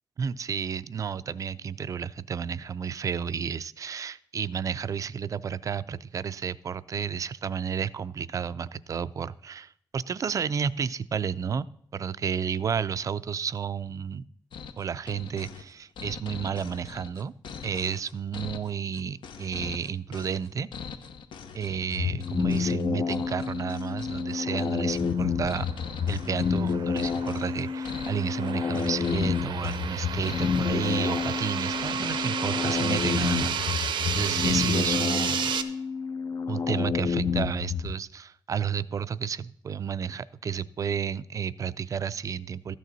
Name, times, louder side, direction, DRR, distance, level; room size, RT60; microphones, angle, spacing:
voice 1, 0.2-11.7 11.9-14.2 14.8-17.3 17.6-20.7 21.6-25.7 26.1-35.5 36.5-42.8, right 7 dB, 45° right, 16 dB, 0.4 m, -31 dB
sound 1, 14.5-33.4, left 6 dB, 85° left, 0.8 m, -42 dB
sound 2, 21.9-37.9, left 6 dB, 45° left, 0.4 m, -29 dB
sound 3, 25.2-35.6, right 8 dB, 85° right, 0.8 m, -32 dB
13.5 x 9.2 x 4.0 m, 0.69 s
wide cardioid pair, 135°, 8 cm